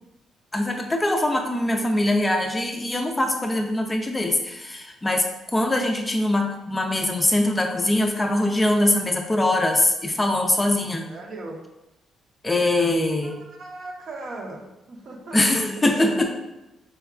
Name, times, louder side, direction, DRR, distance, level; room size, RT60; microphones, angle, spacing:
voice 1, 0.5-11.1 12.4-13.4 15.3-16.3, left 1 dB, 20° left, 3 dB, 0.4 m, -22 dB
voice 2, 10.9-11.6 13.2-16.3, right 2 dB, 55° right, 2 dB, 0.6 m, -38 dB
4.4 x 2.2 x 2.4 m, 0.98 s
cardioid pair, 90°, 0 cm